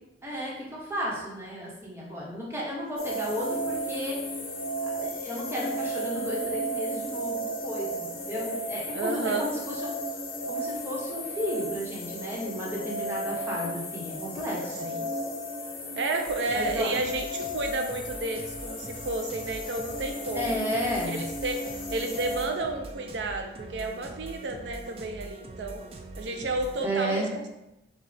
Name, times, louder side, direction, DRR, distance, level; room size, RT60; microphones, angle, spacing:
voice 1, 0.2-4.2 4.8-10.0 10.5-14.9 16.5-17.0 20.3-21.2 26.8-27.3, equal, 15° right, -5 dB, 1.1 m, -33 dB
sound 1, 3.0-22.5, equal, 55° left, 1.1 m, -34 dB
voice 2, 8.9-9.5 14.9-15.1 16.0-20.6 21.0-25.8 26.2-27.5, right 2 dB, 85° right, 4 dB, 0.5 m, -31 dB
sound 2, 16.3-26.8, right 2 dB, 35° right, 0.4 m, -43 dB
6.3 x 2.3 x 3.3 m, 0.91 s
head